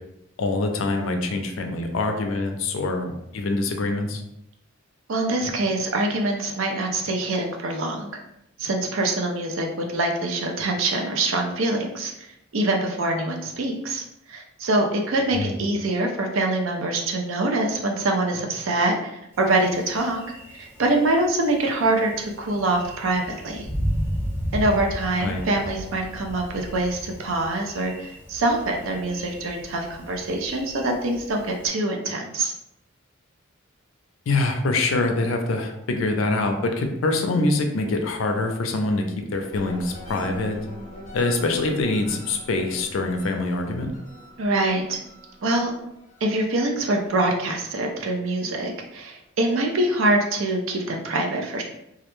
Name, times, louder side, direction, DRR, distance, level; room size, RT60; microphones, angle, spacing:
voice 1, 0.4-4.2 15.3-15.5 25.2-25.4 34.3-40.6 41.1-43.9, left 2 dB, 75° left, 4 dB, 0.4 m, -24 dB
voice 2, 5.1-8.1 8.6-12.1 12.5-14.0 14.3-19.0 19.4-20.2 20.5-23.7 24.5-32.5 44.4-45.0 45.4-45.7 46.2-51.6, right 2 dB, 75° right, 2 dB, 0.5 m, -24 dB
Thunder, 19.3-31.7, equal, 10° right, 0.4 m, -35 dB
sound 1, 39.5-48.3 48.7-49.2, equal, 40° left, 0.7 m, -43 dB
2.3 x 2.1 x 3.0 m, 0.83 s
head